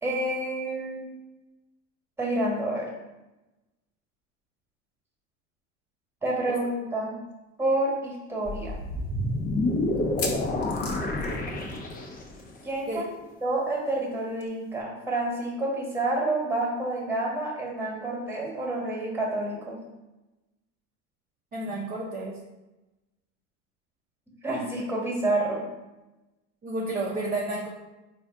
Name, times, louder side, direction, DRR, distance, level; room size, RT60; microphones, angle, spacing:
voice 1, 0.0-1.0 2.2-2.9 6.2-7.2 7.6-8.8 12.6-13.0 13.4-19.8 24.4-25.6, right 2 dB, 5° right, -2 dB, 1.3 m, -28 dB
sound 1, 7.3-7.4 7.7-7.8 8.4-8.5 10.0-12.1 12.4-12.6 12.8-12.9 14.4-14.5, left 4 dB, 40° left, 0.9 m, -37 dB
sound 2, 8.5-12.4, left 2 dB, 25° left, 0.6 m, -29 dB
voice 2, 21.5-22.3 26.6-27.7, right 2 dB, 25° right, -4 dB, 0.7 m, -31 dB
4.0 x 2.4 x 3.6 m, 1.0 s
hypercardioid pair, 95°, 37 cm